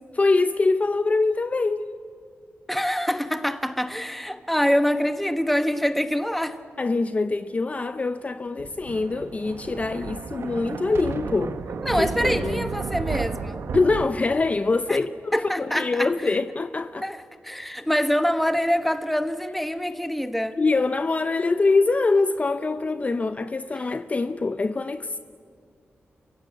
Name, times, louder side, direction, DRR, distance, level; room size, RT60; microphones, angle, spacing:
voice 1, 0.2-1.9 6.8-11.6 12.0-12.7 13.7-17.1 20.6-25.2, left 3 dB, 35° left, 0.7 m, -24 dB
voice 2, 2.7-6.6 11.8-13.6 14.9-15.0 15.3-16.3 17.0-17.2 17.4-20.6, equal, 5° left, 1.3 m, -25 dB
Thunder, 8.6-14.1, right 5 dB, 85° right, 1.2 m, -32 dB
30.0 x 16.0 x 8.8 m
wide cardioid pair, 100°, 4 cm